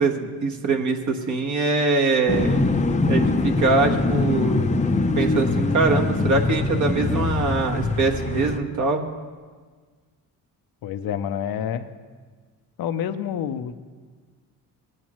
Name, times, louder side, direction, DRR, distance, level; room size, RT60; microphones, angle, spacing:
voice 1, 0.0-2.7 3.1-4.7 5.2-9.0, right 3 dB, 50° right, 1 dB, 1.4 m, -23 dB
sound 1, 2.3-8.6, left 2 dB, 20° left, 0.6 m, -23 dB
voice 2, 10.8-11.9 12.8-13.7, left 9 dB, 70° left, 9 dB, 0.7 m, -28 dB
19.0 x 8.8 x 3.1 m, 1.5 s
cardioid pair, 105°, 38 cm